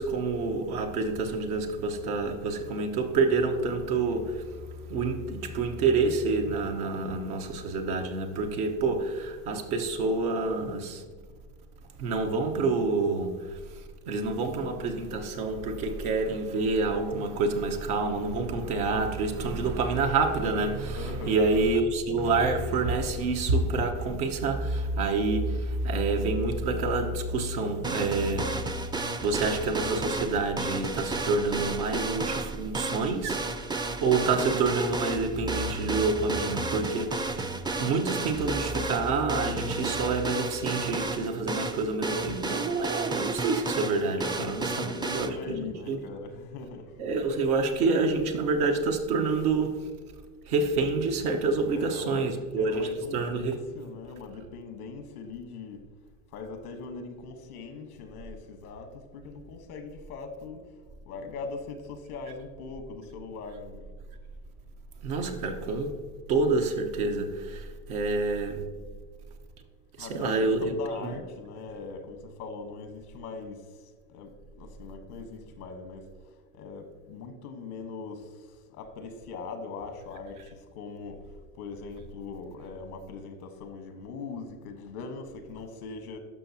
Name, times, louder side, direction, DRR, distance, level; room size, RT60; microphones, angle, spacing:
voice 1, 0.0-4.6 4.9-11.0 12.0-28.6 29.2-45.6 45.9-46.0 47.0-49.9 50.5-53.6 65.0-65.9 66.3-68.6 70.0-70.7 71.0-71.1, right 3 dB, 85° right, 1.2 m, -28 dB
voice 2, 21.0-21.4 44.0-46.9 51.7-55.8 56.3-60.7 61.1-63.9 70.0-73.7 74.1-74.3 74.6-76.1 76.5-78.3 78.7-81.2 81.6-86.2, left 4 dB, 90° left, 1.2 m, -41 dB
sound 1, 27.8-45.3, right 3 dB, 10° right, 0.4 m, -33 dB
12.5 x 5.8 x 2.8 m
hypercardioid pair, 85°, 43 cm